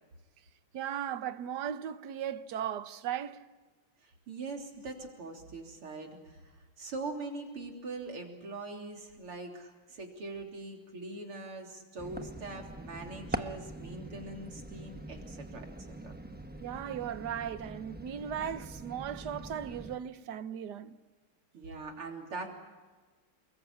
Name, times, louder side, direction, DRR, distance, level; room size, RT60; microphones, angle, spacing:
voice 1, 0.7-3.4 16.6-21.0, right 9 dB, 60° right, 1.4 m, -37 dB
voice 2, 4.0-15.7 16.0-16.1 21.5-22.5, right 3 dB, 85° right, 4.2 m, -42 dB
sound 1, 12.0-20.0, right 1 dB, 15° right, 0.3 m, -43 dB
29.0 x 21.5 x 8.6 m
omnidirectional pair, 2.4 m